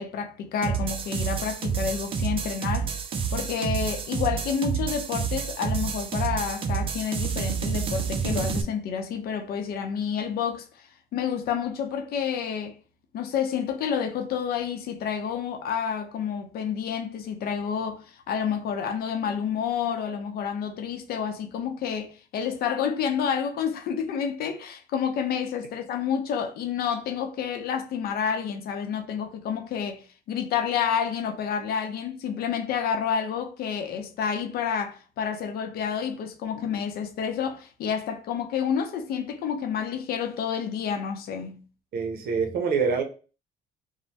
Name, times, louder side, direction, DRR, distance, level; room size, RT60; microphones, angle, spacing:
voice 1, 0.0-3.0 3.3-10.9 11.1-12.8 13.1-30.0 30.3-41.6, left 7 dB, 65° left, 0.6 m, -29 dB
sound 1, 0.6-8.6, right 6 dB, 35° right, 0.4 m, -29 dB
voice 2, 41.9-43.0, right 5 dB, 65° right, 0.7 m, -25 dB
3.1 x 2.1 x 2.7 m
cardioid pair, 110°, 17 cm